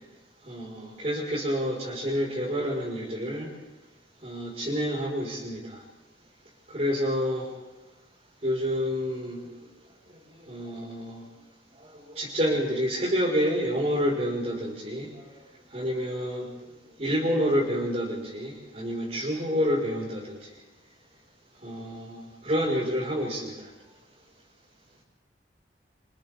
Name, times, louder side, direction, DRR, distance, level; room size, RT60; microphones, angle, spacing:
voice 1, 0.5-3.5 4.2-5.8 6.7-7.5 8.4-9.4 10.4-11.3 12.1-15.3 15.7-16.5 17.0-20.4 21.6-23.7, equal, 40° right, -7 dB, 5.2 m, -28 dB
29.0 x 27.0 x 3.6 m, 1.1 s
head